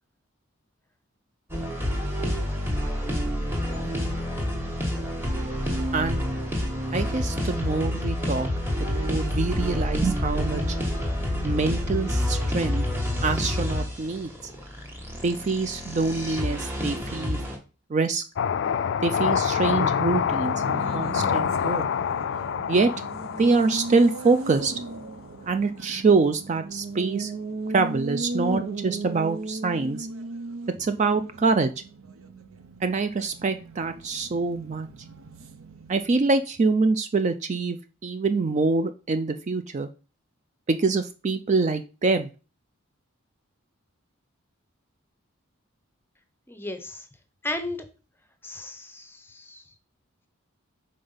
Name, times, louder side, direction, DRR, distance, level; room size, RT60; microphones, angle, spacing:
sound 1, 1.5-17.6, left 1 dB, 10° right, 1.3 m, -28 dB
voice 1, 6.9-8.5 8.8-10.8 11.4-12.9 13.2-14.3 15.2-17.4 17.9-18.2 19.0-21.8 22.7-22.9 23.4-24.7 25.5-27.3 27.7-30.1 30.8-31.7 32.8-34.9 35.9-37.8 38.0-39.9 40.7-42.3, right 4 dB, 35° right, 9 dB, 0.3 m, -25 dB
sound 2, 18.4-24.8, left 7 dB, 55° left, 0.3 m, -26 dB
Race car auto racing, 20.1-36.3, right 2 dB, 80° right, 0.7 m, -37 dB
voice 2, 46.5-47.0 47.4-47.8 48.4-49.6, left 2 dB, 10° left, 8 dB, 0.7 m, -34 dB
5.1 x 3.9 x 5.6 m, 0.34 s
head